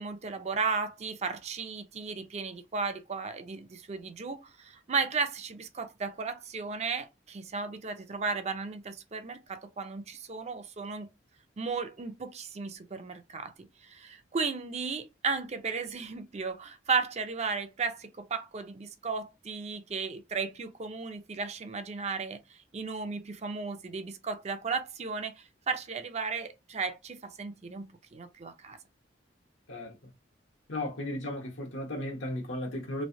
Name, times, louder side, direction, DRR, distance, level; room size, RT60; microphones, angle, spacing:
voice 1, 0.0-11.1 11.6-25.3 25.7-28.8, right 4 dB, 35° right, 0.5 m, -35 dB
voice 2, 30.7-33.0, left 1 dB, 85° left, 1.0 m, -35 dB
3.1 x 2.6 x 2.7 m
head